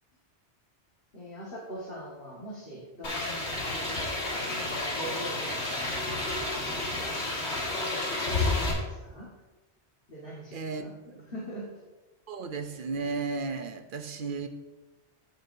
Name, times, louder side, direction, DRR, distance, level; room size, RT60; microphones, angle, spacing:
voice 1, 1.1-6.9 7.3-9.3 10.1-10.9 11.3-11.7, equal, 55° left, -7 dB, 2.0 m, -43 dB
sound 1, 3.0-8.7, left 2 dB, 85° left, 2.1 m, -31 dB
voice 2, 10.5-10.9 11.2-11.3 12.3-14.5, right 4 dB, 55° right, 7 dB, 0.8 m, -34 dB
15.5 x 5.3 x 2.7 m, 1.2 s
omnidirectional pair, 1.1 m